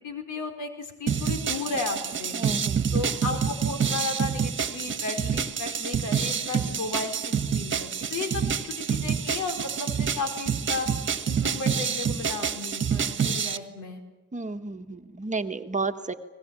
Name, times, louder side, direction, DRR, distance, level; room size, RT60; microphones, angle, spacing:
voice 1, 0.0-2.4 2.9-10.9 11.3-14.0, left 3 dB, 80° left, 6 dB, 4.8 m, -34 dB
sound 1, 1.1-13.6, right 7 dB, 40° right, 1.6 m, -28 dB
voice 2, 2.3-2.9 8.3-8.5 14.3-16.1, right 3 dB, 25° right, 7 dB, 1.5 m, -32 dB
23.5 x 20.5 x 9.0 m, 1.1 s
cardioid pair, 90°, 30 cm